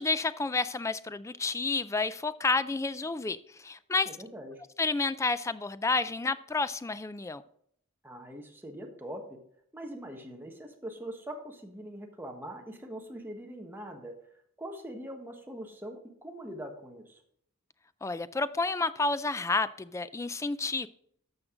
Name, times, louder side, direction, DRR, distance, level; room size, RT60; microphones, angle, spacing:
voice 1, 0.0-4.1 4.8-7.4 18.0-20.9, left 3 dB, 15° left, 0.3 m, -30 dB
voice 2, 4.0-4.6 8.0-9.4 9.7-14.1 14.6-17.2, right 1 dB, 10° right, 1.3 m, -42 dB
12.0 x 6.5 x 3.8 m
head